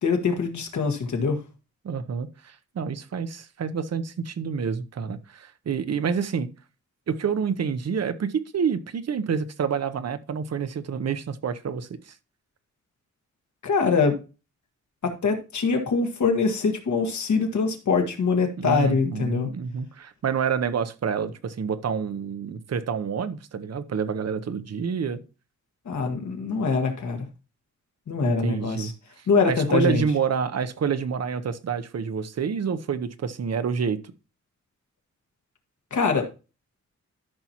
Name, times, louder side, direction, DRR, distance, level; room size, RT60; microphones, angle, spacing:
voice 1, 0.0-1.4 13.6-14.2 15.0-19.5 25.8-27.3 28.1-28.9 29.3-30.0 35.9-36.3, left 5 dB, 75° left, 1.6 m, -24 dB
voice 2, 1.8-6.5 7.1-12.1 18.6-25.2 28.2-28.9 29.2-34.1, right 6 dB, 60° right, 0.7 m, -28 dB
13.0 x 5.9 x 2.9 m
wide cardioid pair, 175°, 29 cm